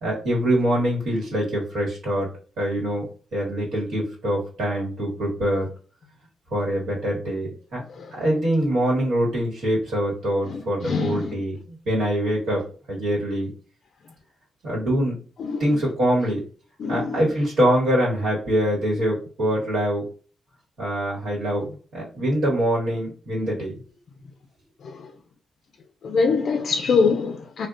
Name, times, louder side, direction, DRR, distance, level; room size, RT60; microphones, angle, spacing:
voice 1, 0.0-2.3 2.6-3.0 3.3-5.7 6.5-7.8 8.1-12.6 12.9-13.5 14.6-15.2 15.6-16.4 16.9-20.0 20.8-21.6 21.9-23.7, equal, 75° right, 1.4 m, -24 dB
voice 2, 7.9-8.2 10.4-11.4 15.4-15.8 16.8-17.2 24.8-25.1 26.0-27.7, left 5 dB, 55° left, 0.4 m, -24 dB
3.5 x 2.3 x 2.5 m
cardioid pair, 130°, 0 cm